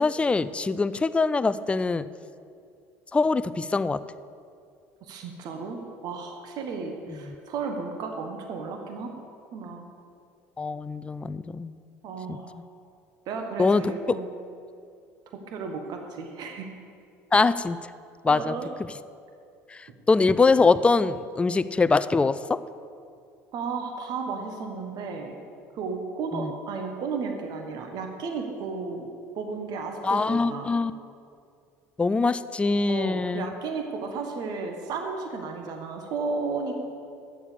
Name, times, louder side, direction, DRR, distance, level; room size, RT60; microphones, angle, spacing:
voice 1, 0.0-2.1 3.1-4.0 10.6-11.7 12.3-12.4 13.6-13.8 14.1-14.2 17.3-17.8 18.2-18.5 20.1-22.6 26.3-26.5 30.0-30.9 32.0-33.5, left 4 dB, 15° left, 15 dB, 0.4 m, -23 dB
voice 2, 5.0-9.1 9.5-9.9 12.0-12.6 13.3-14.3 15.5-16.7 18.3-18.7 23.5-25.4 25.7-29.1 29.3-30.7 32.9-36.8, right 4 dB, 60° right, 4 dB, 1.4 m, -33 dB
10.0 x 7.2 x 6.8 m, 2.4 s
hypercardioid pair, 80°, 8 cm